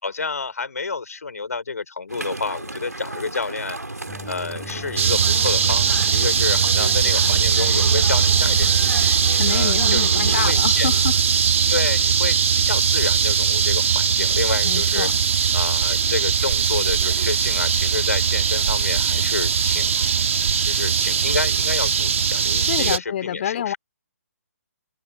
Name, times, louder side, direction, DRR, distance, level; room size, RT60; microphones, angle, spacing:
voice 1, 0.0-3.8 4.2-8.9 9.5-10.9 11.7-15.1 15.5-20.0 20.6-23.8, left 4 dB, 70° left, 5.4 m, -29 dB
sound 1, 2.1-10.5, right 2 dB, 90° right, 4.3 m, -34 dB
sound 2, 4.1-9.1, left 2 dB, 5° left, 3.3 m, -40 dB
sound 3, 5.0-23.0, right 7 dB, 55° right, 2.9 m, -20 dB
voice 2, 9.3-11.4 14.6-15.1 22.7-23.7, left 10 dB, 40° left, 2.9 m, -27 dB
figure-of-eight pair, 140°, 9 cm